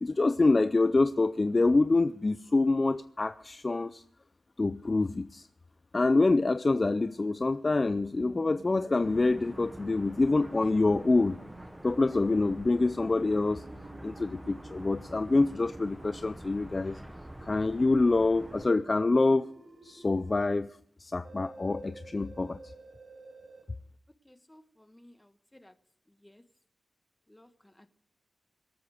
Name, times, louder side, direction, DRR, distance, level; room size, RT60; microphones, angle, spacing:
voice 1, 0.0-4.0 4.6-5.5 5.9-11.4 11.8-13.6 14.0-17.0 17.4-19.5 19.8-20.7 21.0-22.6, left 3 dB, 35° left, 12 dB, 0.5 m, -26 dB
sound 1, 8.2-11.7 12.7-16.3 17.4-20.5 21.2-23.6, right 3 dB, 65° right, 3.8 m, -52 dB
sound 2, 9.0-18.7, right 1 dB, 10° right, 1.2 m, -46 dB
voice 2, 24.2-25.7 26.2-26.4 27.3-27.9, left 1 dB, 10° left, 9 dB, 1.4 m, -57 dB
24.5 x 8.6 x 5.0 m, 0.62 s
cardioid pair, 75°, 0 cm